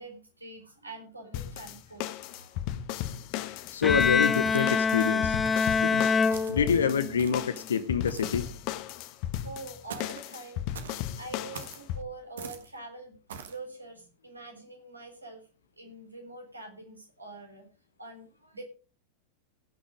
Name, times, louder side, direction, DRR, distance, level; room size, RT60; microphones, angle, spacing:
voice 1, 0.0-2.8 8.0-8.1 9.4-13.1 13.5-15.4 15.8-17.7 18.0-18.6, right 2 dB, 80° right, 4 dB, 3.4 m, -45 dB
sound 1, 1.3-12.0, left 12 dB, 45° left, 1.0 m, -36 dB
voice 2, 3.7-5.4 5.8-6.1 6.5-8.5, left 7 dB, 65° left, 11 dB, 0.8 m, -27 dB
Bowed string instrument, 3.8-7.2, left 5 dB, 15° left, 0.8 m, -25 dB
sound 2, 4.4-4.9 5.4-5.8 6.3-6.6 7.2-7.5 8.1-8.4 9.9-10.3 10.7-11.0 11.5-11.8 12.4-12.7 13.3-13.6, right 6 dB, 60° right, 1.7 m, -43 dB
16.5 x 6.3 x 4.9 m, 0.36 s
figure-of-eight pair, 90°, 0 cm